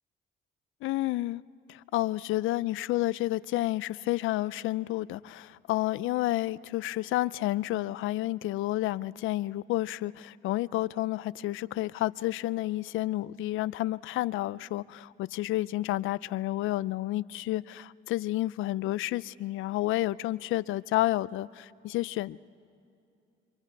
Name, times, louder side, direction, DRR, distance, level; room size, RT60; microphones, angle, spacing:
voice 1, 0.8-1.4 1.7-22.4, left 16 dB, 85° left, 0.5 m, -30 dB
29.0 x 25.5 x 4.7 m
cardioid pair, 90°, 20 cm